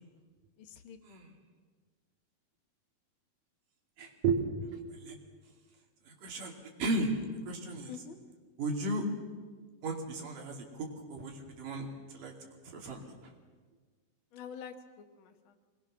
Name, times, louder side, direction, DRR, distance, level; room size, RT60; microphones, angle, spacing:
voice 1, 0.6-1.0 7.9-8.2 14.3-15.6, left 7 dB, 70° left, 4 dB, 1.2 m, -47 dB
voice 2, 4.0-4.4 4.7-5.2 6.1-6.5 6.8-7.1 7.5-7.9 8.6-9.1 9.8-12.3 12.6-13.1, right 3 dB, 65° right, 2 dB, 4.0 m, -35 dB
25.5 x 20.5 x 6.3 m, 1.4 s
omnidirectional pair, 4.1 m